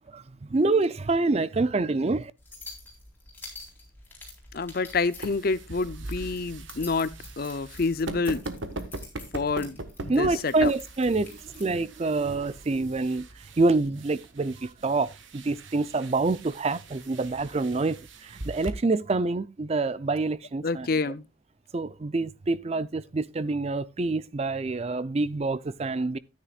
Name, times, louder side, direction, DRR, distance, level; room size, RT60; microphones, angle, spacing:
voice 1, 0.1-2.3 10.1-13.3 13.6-21.1 21.7-26.2, right 3 dB, 30° right, 0.4 m, -27 dB
sound 1, 2.4-11.7, left 3 dB, 10° left, 3.8 m, -47 dB
voice 2, 4.5-8.4 9.3-10.7 20.6-21.2, left 4 dB, 45° left, 0.6 m, -28 dB
sound 2, 4.8-18.7, right 2 dB, 70° right, 1.4 m, -41 dB
13.5 x 9.7 x 2.4 m
head